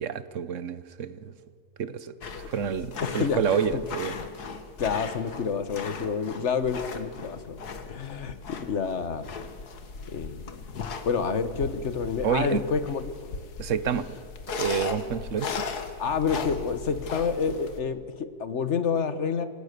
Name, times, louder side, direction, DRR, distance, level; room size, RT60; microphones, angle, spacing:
voice 1, 0.0-1.3 1.8-2.1 2.5-4.1 12.2-12.6 13.6-14.1 14.6-15.6, right 7 dB, 55° right, 15 dB, 1.2 m, -28 dB
sound 1, 2.2-17.8, left 5 dB, 80° left, 2.0 m, -37 dB
voice 2, 3.0-3.4 3.7-3.8 4.8-8.4 8.7-9.3 10.1-10.4 11.0-13.3 16.0-19.5, left 6 dB, 50° left, 12 dB, 1.5 m, -28 dB
27.5 x 17.5 x 6.8 m, 2.2 s
omnidirectional pair, 1.7 m